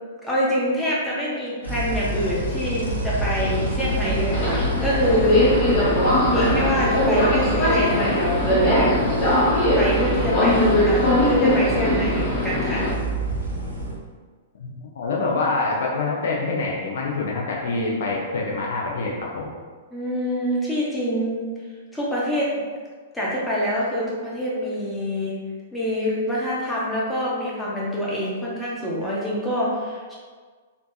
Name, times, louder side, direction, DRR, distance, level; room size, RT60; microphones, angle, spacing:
voice 1, 0.2-5.4 6.3-9.0 9.8-12.9 17.7-17.9 19.9-21.5 21.9-22.6 23.1-25.4 25.7-30.1, equal, 5° left, -7 dB, 0.9 m, -25 dB
sound 1, 1.6-13.9, right 1 dB, 90° right, 0.9 m, -27 dB
Subway metro underground, 3.3-12.9, left 1 dB, 40° left, 1.0 m, -21 dB
voice 2, 14.6-19.5, left 3 dB, 60° left, -2 dB, 0.5 m, -26 dB
3.6 x 2.7 x 2.6 m, 1.5 s
figure-of-eight pair, 105°, 0 cm